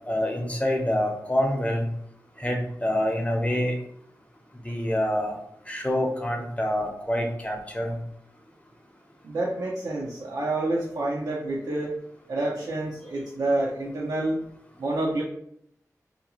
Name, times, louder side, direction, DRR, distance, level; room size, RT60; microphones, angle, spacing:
voice 1, 0.1-1.9 2.4-3.8 4.6-5.4 5.7-8.0, left 1 dB, 20° left, 2 dB, 0.6 m, -26 dB
voice 2, 9.2-11.9 12.3-14.4 14.8-15.2, right 2 dB, 85° right, -4 dB, 0.5 m, -28 dB
2.5 x 2.3 x 2.9 m, 0.71 s
wide cardioid pair, 60°, 6 cm